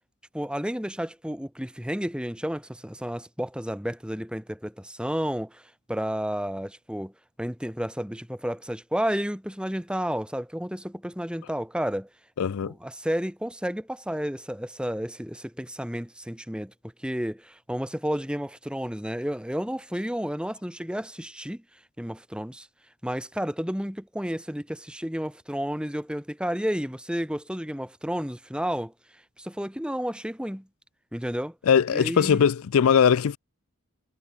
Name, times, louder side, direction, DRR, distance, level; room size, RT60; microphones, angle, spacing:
voice 1, 0.3-7.1 7.4-12.1 12.6-16.7 17.0-21.6 22.0-22.7 23.0-28.9 29.4-30.7 31.1-31.6 31.9-32.5, equal, 5° right, 2.7 m, -31 dB
voice 2, 12.4-12.7 31.7-33.4, left 7 dB, 85° left, 0.4 m, -20 dB
head